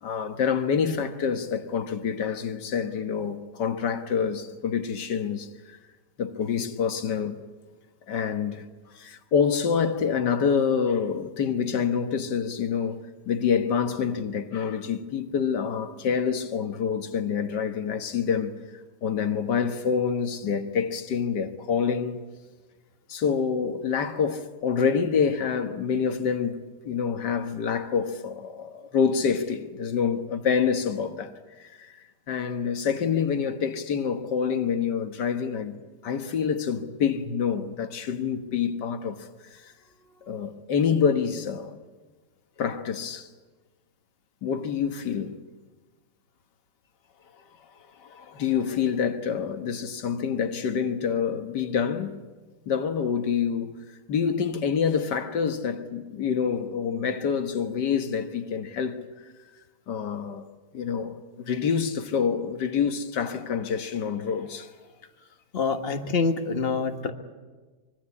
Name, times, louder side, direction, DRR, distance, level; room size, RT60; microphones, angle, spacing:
voice 1, 0.0-5.8 6.2-7.4 8.1-8.6 8.9-13.0 13.3-18.5 19.0-22.2 23.1-26.6 26.8-31.3 31.6-31.9 32.3-35.8 36.0-39.3 39.6-39.7 40.3-41.8 42.6-43.3 44.4-45.4 48.0-52.2 52.7-53.7 54.1-59.0 59.9-60.4 60.7-64.7, left 6 dB, 85° left, 1.9 m, -27 dB
voice 2, 65.5-67.1, left 4 dB, 35° left, 1.8 m, -26 dB
25.0 x 22.5 x 8.5 m
omnidirectional pair, 1.8 m